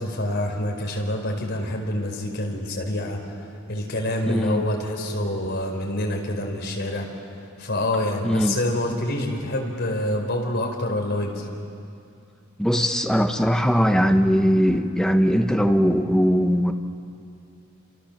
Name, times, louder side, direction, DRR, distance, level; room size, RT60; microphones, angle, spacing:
voice 1, 0.0-3.4 3.7-7.1 7.6-11.5, left 1 dB, 55° left, 1 dB, 4.7 m, -27 dB
voice 2, 4.3-4.6 8.2-8.6 12.6-16.7, equal, 5° left, 5 dB, 1.2 m, -20 dB
28.5 x 28.0 x 7.4 m, 2.5 s
head